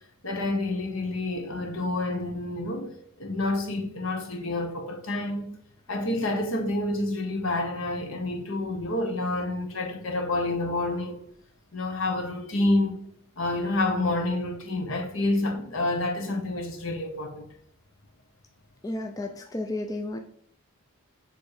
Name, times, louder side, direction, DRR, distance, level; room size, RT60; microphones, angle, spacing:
voice 1, 0.2-5.5 5.9-11.2 11.7-13.0 13.4-17.4, left 2 dB, 65° left, 1.2 m, -28 dB
voice 2, 18.8-20.2, left 2 dB, 15° left, 0.4 m, -32 dB
7.2 x 3.2 x 4.9 m
head